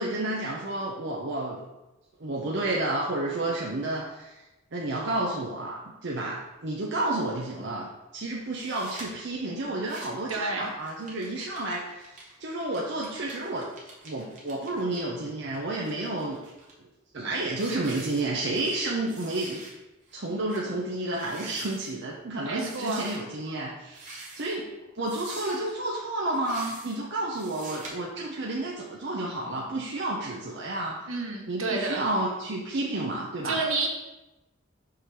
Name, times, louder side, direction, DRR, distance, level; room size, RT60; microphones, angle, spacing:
voice 1, 0.0-1.6 2.2-4.4 4.7-13.7 14.0-16.4 17.1-19.6 20.1-24.7 24.9-31.1 31.5-33.6, right 2 dB, 55° right, -3 dB, 0.8 m, -31 dB
sound 1, 8.5-9.1 9.7-10.3 10.6-15.0 15.5-16.7 17.2-17.3 17.6-18.8 19.1-19.7 20.1-20.2 20.5-20.7 21.1-21.9 22.6-23.2 23.9-24.6 25.0-25.7 26.3-27.0 27.3-27.9, right 2 dB, 35° right, 1.4 m, -45 dB
voice 2, 10.3-10.7 22.4-23.1 31.1-32.0 33.4-33.9, right 3 dB, 80° right, 0 dB, 1.1 m, -30 dB
5.7 x 3.3 x 5.8 m, 1.0 s
head